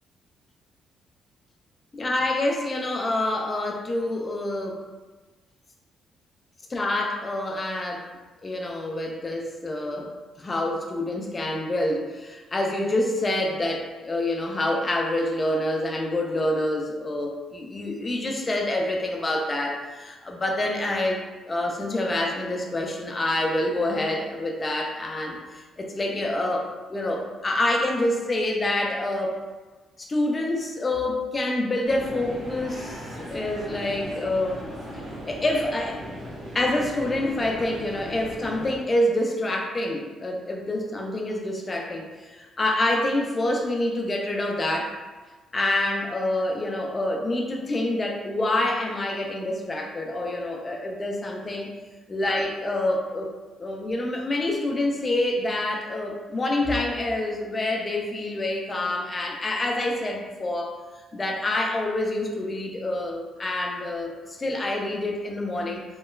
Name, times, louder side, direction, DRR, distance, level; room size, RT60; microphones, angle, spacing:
voice 1, 1.9-4.8 6.7-8.1 8.4-10.1 10.4-29.4 30.0-34.6 35.3-36.0 36.5-44.9 45.5-51.7 52.1-53.3 53.6-60.7 61.1-65.8, left 1 dB, 30° left, 1 dB, 0.4 m, -27 dB
sound 1, 31.8-38.8, equal, 75° right, 0.8 m, -38 dB
2.9 x 2.2 x 2.2 m, 1.3 s
cardioid pair, 90°, 0 cm